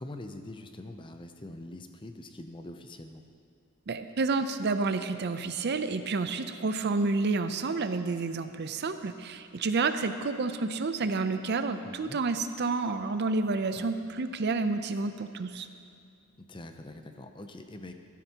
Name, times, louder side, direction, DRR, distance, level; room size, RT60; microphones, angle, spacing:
voice 1, 0.0-3.2 11.8-12.2 13.8-13.9 16.4-17.9, left 1 dB, 20° left, 7 dB, 0.6 m, -44 dB
voice 2, 3.9-15.7, right 3 dB, 50° right, 9 dB, 0.5 m, -29 dB
13.0 x 12.5 x 2.9 m, 2.4 s
head